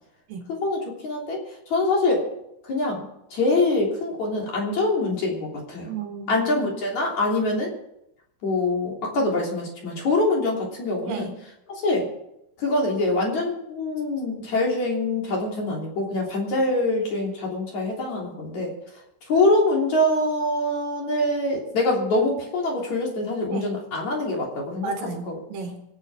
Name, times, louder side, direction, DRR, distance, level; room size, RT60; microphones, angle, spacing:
voice 1, 0.5-1.4 1.7-2.3 2.6-5.9 6.3-7.7 8.4-11.3 11.8-12.1 12.6-18.7 19.3-24.9 25.3-25.4, left 2 dB, 40° left, -2 dB, 4.3 m, -24 dB
voice 2, 5.9-6.5 11.0-11.3 23.5-23.7 24.8-25.8, right 5 dB, 60° right, 3 dB, 3.0 m, -33 dB
26.0 x 9.4 x 4.9 m, 0.81 s
omnidirectional pair, 5.3 m